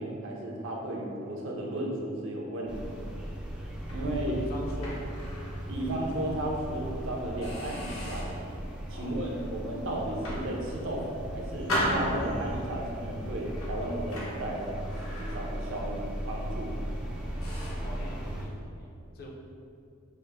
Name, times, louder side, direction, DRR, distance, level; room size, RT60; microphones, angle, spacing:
voice 1, 0.0-3.1 3.9-4.4 5.7-8.6 8.9-16.8, right 1 dB, 70° right, -2 dB, 0.6 m, -34 dB
sound 1, 2.7-18.5, equal, 5° right, 0.3 m, -37 dB
sound 2, 3.8-5.6 6.1-6.2 6.8-6.9 7.4-8.5 9.0-9.4 10.0-11.1 11.7-12.7 13.5-15.8 16.1-16.4 16.9-17.0 17.4-17.9, equal, 85° left, 1.0 m, -36 dB
voice 2, 4.3-5.1 8.9-9.4 17.8-19.3, equal, 45° left, -2 dB, 0.5 m, -44 dB
4.8 x 2.0 x 3.3 m, 2.5 s
head